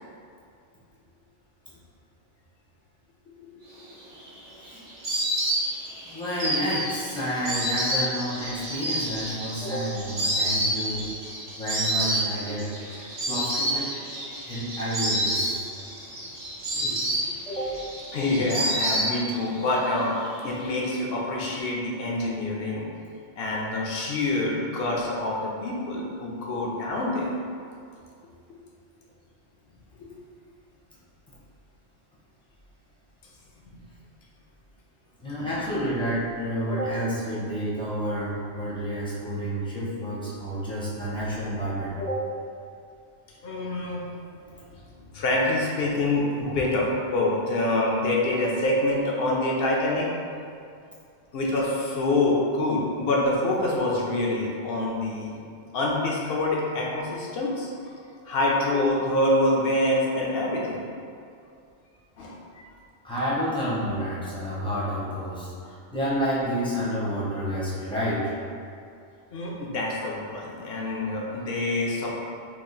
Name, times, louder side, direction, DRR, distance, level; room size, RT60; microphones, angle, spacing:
Insect, 3.9-19.6 19.9-20.7, right 1 dB, 45° right, 0.4 m, -29 dB
voice 1, 6.0-11.0 11.6-13.9 14.5-15.6 17.5-17.8 35.2-42.3 58.7-58.9 63.0-68.3, equal, 5° left, -9 dB, 0.5 m, -29 dB
voice 2, 18.1-20.2 20.4-22.9 23.4-27.3 30.0-30.1 33.7-33.8 43.4-44.0 45.1-50.1 51.3-55.4 55.7-57.9 58.2-60.8 62.2-62.7 69.3-72.1, left 2 dB, 60° left, -3 dB, 0.7 m, -26 dB
2.9 x 2.4 x 3.8 m, 2.4 s
omnidirectional pair, 1.3 m